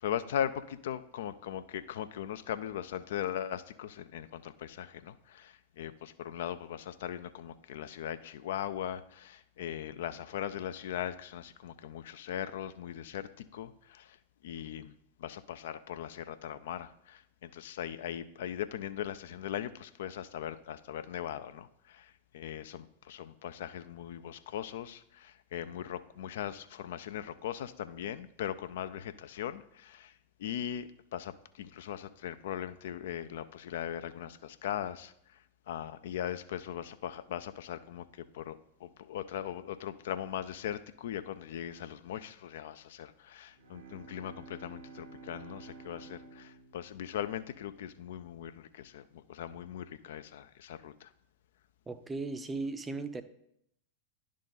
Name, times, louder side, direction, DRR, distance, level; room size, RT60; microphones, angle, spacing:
voice 1, 0.0-14.2 14.4-14.9 15.2-30.1 30.4-35.4 35.7-51.1, left 10 dB, 60° left, 12 dB, 0.3 m, -39 dB
Bowed string instrument, 43.5-48.1, right 4 dB, 65° right, 0.9 m, -52 dB
voice 2, 51.9-53.2, right 3 dB, 15° right, 10 dB, 0.5 m, -37 dB
10.5 x 3.7 x 3.8 m, 0.73 s
figure-of-eight pair, 90°, 0 cm